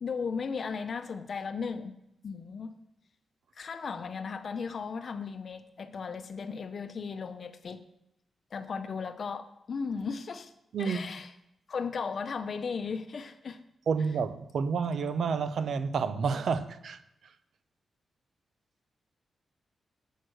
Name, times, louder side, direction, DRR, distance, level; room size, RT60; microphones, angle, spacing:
voice 1, 0.0-1.9 2.2-2.8 3.6-7.8 8.5-10.5 10.8-11.3 11.7-13.6, left 5 dB, 50° left, 0.7 m, -36 dB
voice 2, 10.7-11.1 13.9-17.3, right 5 dB, 70° right, 0.6 m, -30 dB
8.1 x 6.3 x 6.3 m
wide cardioid pair, 125°, 0 cm